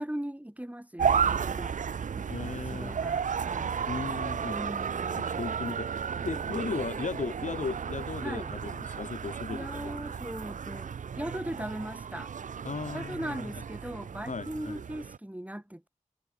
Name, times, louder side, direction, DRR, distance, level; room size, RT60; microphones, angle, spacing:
voice 1, 0.0-1.7 2.1-3.7 4.5-5.5 8.2-8.6 9.5-12.3 12.9-15.9, right 1 dB, 10° right, 6.3 m, -39 dB
sound 1, 1.0-15.2, right 7 dB, 80° right, 0.4 m, -33 dB
voice 2, 2.3-3.0 3.9-4.6 5.2-5.9 6.2-10.1 12.6-13.5 14.3-14.8, left 4 dB, 70° left, 1.1 m, -36 dB
wide cardioid pair, 65°, 13 cm